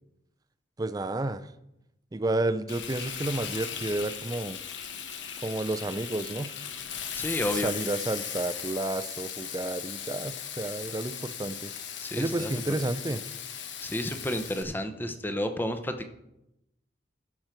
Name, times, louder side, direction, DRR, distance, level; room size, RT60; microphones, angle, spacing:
voice 1, 0.8-1.4 2.1-4.6 5.4-6.5 7.6-11.7 12.2-13.2, right 2 dB, 20° right, 12 dB, 0.4 m, -31 dB
Frying (food), 2.7-14.6, left 8 dB, 75° left, 1.0 m, -38 dB
voice 2, 7.1-7.7 12.0-12.8 13.8-16.1, left 1 dB, 10° left, 8 dB, 0.7 m, -31 dB
15.5 x 6.1 x 4.5 m, 0.88 s
head